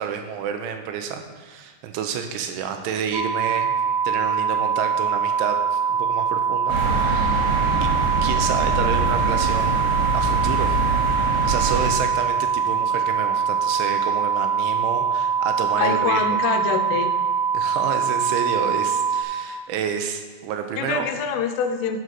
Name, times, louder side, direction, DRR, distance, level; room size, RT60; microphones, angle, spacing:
voice 1, 0.0-3.7 4.0-7.5 7.8-7.9 8.2-10.8 11.4-16.4 17.5-21.1, right 7 dB, 85° right, 6 dB, 3.3 m, -29 dB
sound 1, 3.1-19.2, right 6 dB, 10° right, 2.5 m, -23 dB
sound 2, 6.7-11.9, right 2 dB, 65° right, 3.4 m, -24 dB
voice 2, 15.8-17.1 20.8-22.0, left 6 dB, 85° left, 6 dB, 3.4 m, -25 dB
11.0 x 6.8 x 6.2 m, 1.5 s
omnidirectional pair, 5.5 m